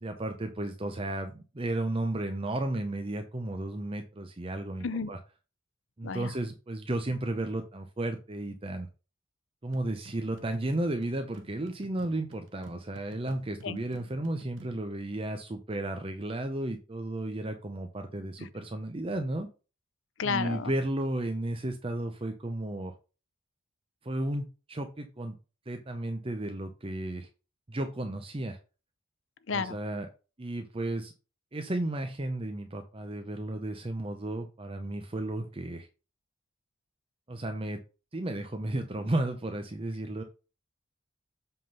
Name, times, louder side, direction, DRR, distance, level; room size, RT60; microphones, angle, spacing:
voice 1, 0.0-5.2 6.0-8.9 9.6-19.5 20.2-22.9 24.0-25.4 25.7-27.3 27.7-28.6 29.5-30.1 30.4-31.1 31.5-35.9 37.3-37.8 38.1-40.2, right 1 dB, 25° right, 0.7 m, -33 dB
voice 2, 4.8-5.1 6.0-6.3 13.6-13.8 18.4-18.5 20.2-20.7 29.5-29.8, left 5 dB, 65° left, 0.6 m, -32 dB
sound 1, 9.7-14.8, right 2 dB, 65° right, 0.9 m, -53 dB
7.7 x 3.7 x 5.4 m
head